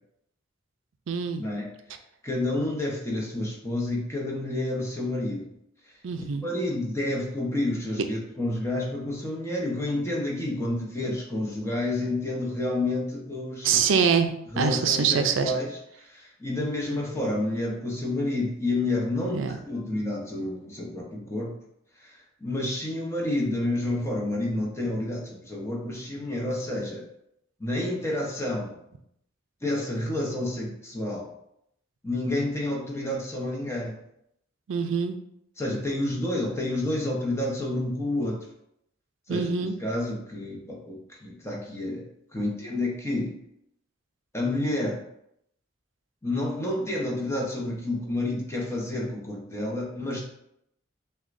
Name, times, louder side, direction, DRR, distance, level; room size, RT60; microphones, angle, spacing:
voice 1, 1.1-1.5 6.0-6.4 13.6-15.5 19.2-19.6 34.7-35.2 39.3-39.8, right 6 dB, 75° right, 7 dB, 0.4 m, -24 dB
voice 2, 2.2-5.5 5.8-6.0 6.4-13.8 14.5-21.6 22.0-27.0 27.6-28.7 29.6-31.3 32.0-34.0 35.6-38.4 39.3-43.4 44.3-45.0 46.2-50.2, left 1 dB, 15° left, -2 dB, 0.8 m, -29 dB
6.2 x 2.3 x 2.5 m, 0.76 s
head